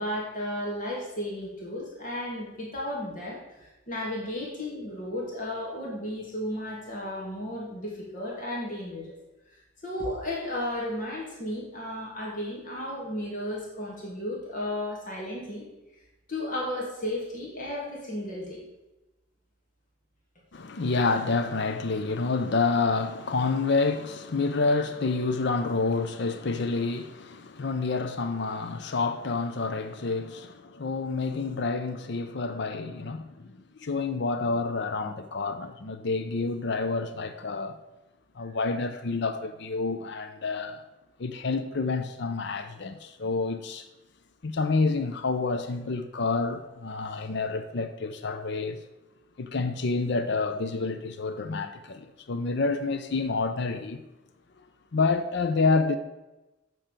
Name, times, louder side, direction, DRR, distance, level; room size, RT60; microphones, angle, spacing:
voice 1, 0.0-9.1 9.8-15.6 16.3-18.6, left 1 dB, 45° left, 2.3 m, -34 dB
voice 2, 20.5-37.8 38.4-40.8 41.2-43.9 44.4-48.8 49.4-54.0 54.9-56.0, left 3 dB, 60° left, 0.6 m, -28 dB
7.6 x 6.1 x 6.7 m
head